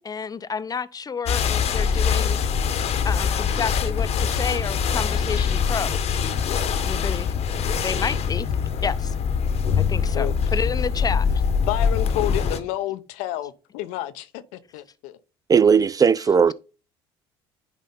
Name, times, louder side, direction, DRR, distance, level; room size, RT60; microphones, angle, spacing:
voice 1, 0.0-2.4 3.0-6.0 6.8-7.3 7.7-8.5 8.8-9.1 9.8-11.3, left 6 dB, 30° left, 0.8 m, -30 dB
sound 1, 1.3-12.6, left 6 dB, 55° left, 1.1 m, -23 dB
voice 2, 11.7-15.2, left 13 dB, 75° left, 0.7 m, -30 dB
voice 3, 15.5-16.5, right 6 dB, 30° right, 0.4 m, -17 dB
10.5 x 4.1 x 3.8 m
hypercardioid pair, 65°, 13 cm